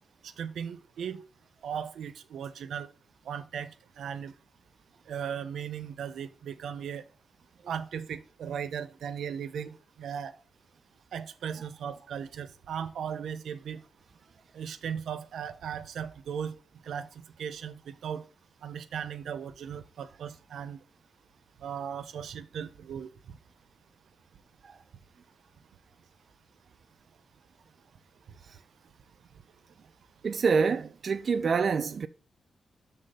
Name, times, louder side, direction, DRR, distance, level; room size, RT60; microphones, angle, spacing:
voice 1, 0.2-1.2 1.6-2.9 3.2-3.7 4.0-4.4 5.1-7.1 7.7-9.7 10.0-10.4 11.1-13.8 14.5-18.2 18.6-20.8 21.6-23.4, right 8 dB, 85° right, 0.6 m, -37 dB
voice 2, 30.2-32.1, right 5 dB, 40° right, 0.3 m, -27 dB
6.6 x 3.6 x 5.7 m
wide cardioid pair, 180°, 0 cm